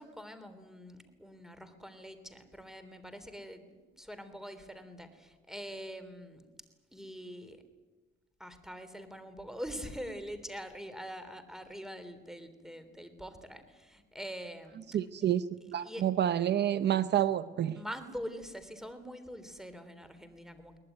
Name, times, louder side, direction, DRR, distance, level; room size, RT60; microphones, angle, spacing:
voice 1, 0.0-6.5 6.9-7.6 8.4-15.0 15.8-16.1 17.7-20.8, equal, ahead, 10 dB, 3.4 m, -44 dB
voice 2, 14.9-17.8, right 10 dB, 60° right, 13 dB, 0.7 m, -29 dB
22.5 x 19.5 x 9.4 m, 1.3 s
cardioid pair, 90°, 20 cm